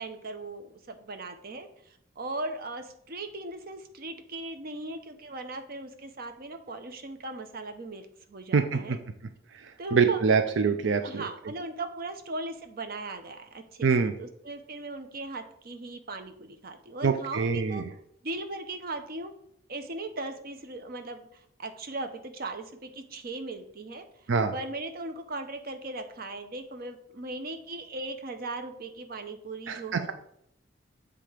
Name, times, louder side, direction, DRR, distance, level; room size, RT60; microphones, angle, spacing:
voice 1, 0.0-1.7 2.2-9.0 9.8-10.5 11.0-17.8 18.2-19.3 19.7-24.0 24.5-30.1, right 2 dB, 55° right, 7 dB, 0.8 m, -38 dB
voice 2, 8.5-9.0 9.9-11.2 13.8-14.1 17.0-17.8 24.3-24.5 29.7-30.0, right 5 dB, 85° right, 8 dB, 0.5 m, -24 dB
7.5 x 3.5 x 4.9 m, 0.72 s
head